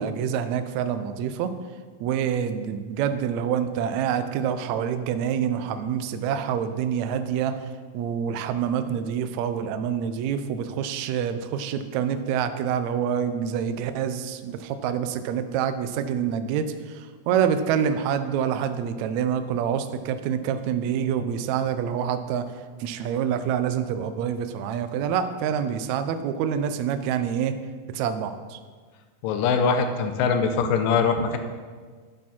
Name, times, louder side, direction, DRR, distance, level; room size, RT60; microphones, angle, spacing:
voice 1, 0.0-1.5 2.0-7.5 7.9-27.5 27.9-28.6, right 8 dB, 80° right, 9 dB, 1.6 m, -26 dB
voice 2, 29.2-31.4, left 5 dB, 80° left, 7 dB, 2.5 m, -22 dB
12.0 x 9.0 x 4.3 m, 1.5 s
omnidirectional pair, 4.0 m